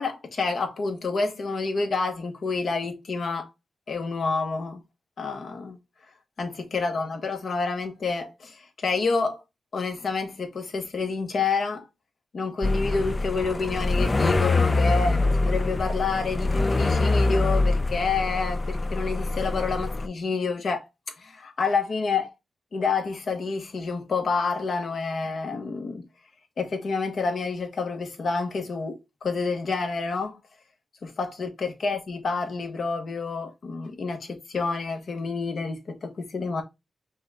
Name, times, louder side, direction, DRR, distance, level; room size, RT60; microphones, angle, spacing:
voice 1, 0.0-3.5 3.9-4.8 5.2-5.8 6.4-9.4 9.7-11.8 12.3-20.8 21.2-22.3 22.7-26.0 26.6-30.4 31.0-36.6, left 4 dB, 60° left, 1.1 m, -28 dB
sound 1, 12.6-20.1, left 2 dB, 25° left, 0.3 m, -24 dB
5.4 x 2.3 x 4.0 m
wide cardioid pair, 105°, 0 cm